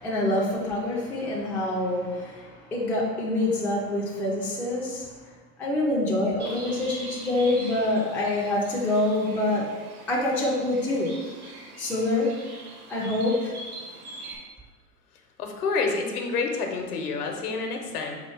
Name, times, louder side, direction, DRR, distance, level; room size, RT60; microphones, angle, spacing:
voice 1, 0.0-5.1 5.6-9.6 10.1-11.1 11.8-12.3 12.9-13.5, left 2 dB, 5° left, -5 dB, 0.4 m, -26 dB
Bird, 6.4-14.4, right 1 dB, 65° right, 1.2 m, -43 dB
voice 2, 15.4-18.2, left 4 dB, 65° left, 3 dB, 0.9 m, -28 dB
4.3 x 2.4 x 4.7 m, 1.3 s
hypercardioid pair, 100°, 49 cm